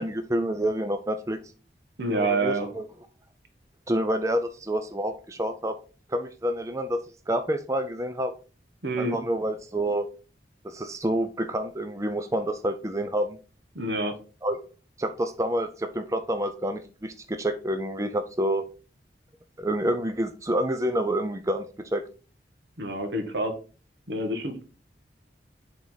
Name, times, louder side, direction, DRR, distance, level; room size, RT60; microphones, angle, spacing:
voice 1, 0.0-1.4 2.1-2.9 3.9-5.7 6.1-7.0 7.3-8.3 9.0-10.1 10.6-13.4 14.4-14.6 15.0-18.7 19.6-21.6 21.9-22.0, right 1 dB, 15° right, 8 dB, 0.5 m, -28 dB
voice 2, 2.0-2.7 8.8-9.2 13.7-14.1 22.8-23.5 24.1-24.6, right 2 dB, 85° right, 5 dB, 1.5 m, -27 dB
7.3 x 3.6 x 3.9 m, 0.35 s
head